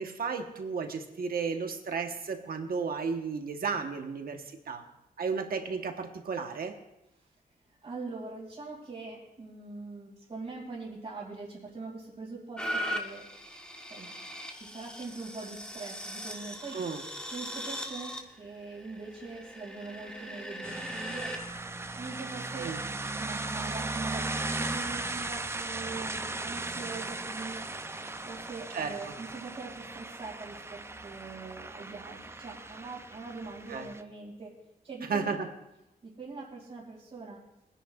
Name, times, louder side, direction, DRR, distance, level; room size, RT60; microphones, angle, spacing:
voice 1, 0.0-4.8 5.2-6.8 16.7-17.0 22.6-22.8 28.7-29.1 33.7-33.9 35.1-35.4, right 5 dB, 70° right, 5 dB, 1.2 m, -33 dB
voice 2, 7.8-13.2 13.9-14.2 14.5-16.8 17.3-21.4 22.0-22.7 23.1-27.7 28.3-34.5 34.8-35.4 36.0-37.4, right 3 dB, 40° right, -7 dB, 2.5 m, -42 dB
sound 1, 12.6-21.4 22.0-22.1, equal, 5° left, 1.0 m, -39 dB
sound 2, 20.6-34.0, right 2 dB, 15° right, 0.4 m, -37 dB
21.5 x 10.0 x 2.4 m, 0.90 s
wide cardioid pair, 155°, 16 cm